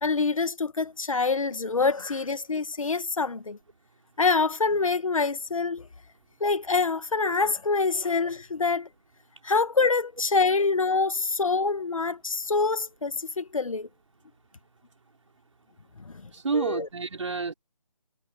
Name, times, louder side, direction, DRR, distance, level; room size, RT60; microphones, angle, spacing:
voice 1, 0.0-3.6 4.2-5.9 6.4-8.9 9.4-13.9 16.1-16.2 16.5-16.9, left 4 dB, 55° left, 1.9 m, -25 dB
voice 2, 16.3-17.5, right 4 dB, 50° right, 4.7 m, -29 dB
figure-of-eight pair, 165°, 20 cm